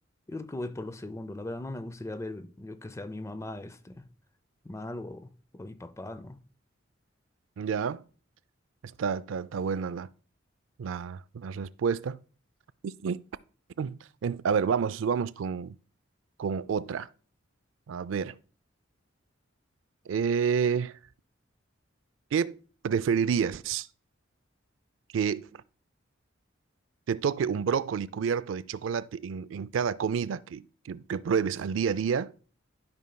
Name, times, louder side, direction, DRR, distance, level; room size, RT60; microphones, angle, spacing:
voice 1, 0.3-4.1 4.6-6.4, left 2 dB, 15° left, 0.4 m, -39 dB
voice 2, 7.6-8.0 9.0-10.1 10.8-12.2 12.8-13.2 13.8-15.8 16.4-17.1 17.9-18.4 20.1-21.0 22.3-23.9 25.1-25.6 27.1-32.3, right 6 dB, 75° right, 0.4 m, -29 dB
12.5 x 5.5 x 2.2 m
head